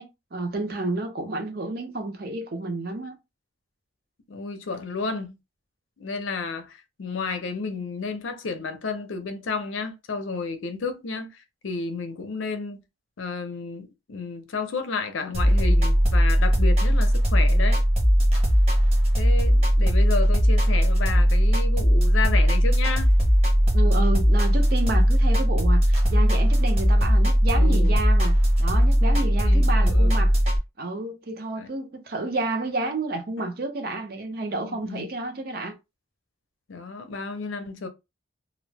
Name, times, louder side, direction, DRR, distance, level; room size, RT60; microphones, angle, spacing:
voice 1, 0.0-3.2 23.7-30.3 30.8-35.7, right 2 dB, 50° right, 0.6 m, -30 dB
voice 2, 4.3-5.4 6.0-12.8 13.2-17.8 19.2-23.1 27.6-27.9 29.2-30.1 31.6-31.7 34.6-35.1 36.7-37.9, left 4 dB, 80° left, 0.6 m, -32 dB
sound 1, 15.3-30.6, equal, 30° right, 0.9 m, -19 dB
2.5 x 2.0 x 3.2 m
head